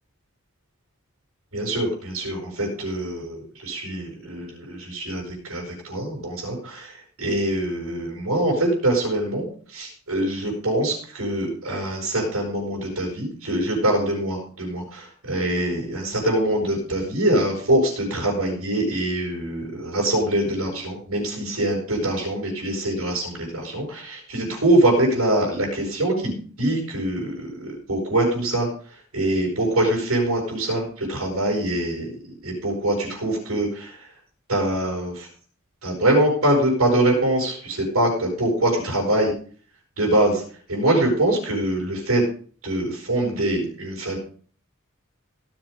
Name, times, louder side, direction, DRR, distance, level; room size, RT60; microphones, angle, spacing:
voice 1, 1.5-32.1 32.4-34.1 34.5-35.3 35.8-39.3 40.0-40.4 40.7-42.2 42.6-44.2, right 1 dB, 90° right, -2 dB, 6.9 m, -24 dB
18.5 x 7.9 x 5.3 m, 0.44 s
head